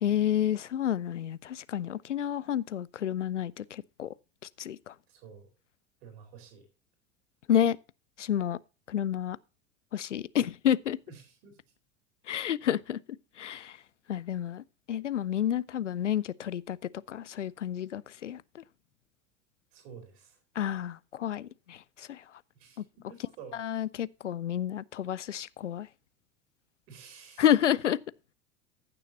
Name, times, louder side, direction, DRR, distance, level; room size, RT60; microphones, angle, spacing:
voice 1, 0.0-4.1 4.6-4.9 7.5-7.8 8.2-8.6 8.9-9.4 9.9-11.0 12.3-13.0 13.4-13.8 14.1-16.8 17.1-18.6 20.6-22.2 23.6-25.9 27.4-28.0, left 10 dB, 80° left, 0.5 m, -30 dB
voice 2, 5.1-5.5 6.0-6.7 11.1-11.7 19.7-20.4 22.5-23.6 26.9-27.6, right 6 dB, 55° right, 4.0 m, -50 dB
15.0 x 6.9 x 2.8 m
figure-of-eight pair, 75°, 36 cm